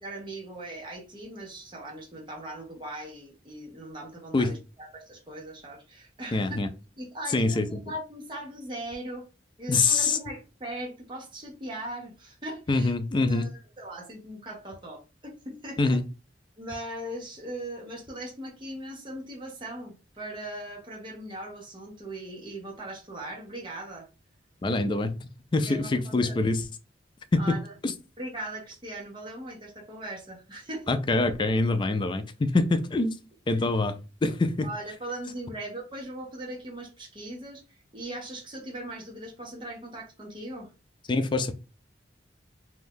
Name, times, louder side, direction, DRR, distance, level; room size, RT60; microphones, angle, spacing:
voice 1, 0.0-6.7 7.0-9.2 9.6-12.9 13.3-16.0 16.6-24.1 25.6-26.4 27.4-27.7 28.2-30.9 33.5-33.7 34.6-40.7, right 1 dB, 25° right, 0.7 m, -39 dB
voice 2, 6.3-6.7 7.3-7.8 9.7-10.2 12.7-13.5 15.8-16.0 24.6-25.2 25.5-26.6 27.3-27.5 27.8-27.9 30.9-33.2 33.5-34.7 41.1-41.5, left 3 dB, 25° left, 0.3 m, -25 dB
2.6 x 2.3 x 3.5 m
head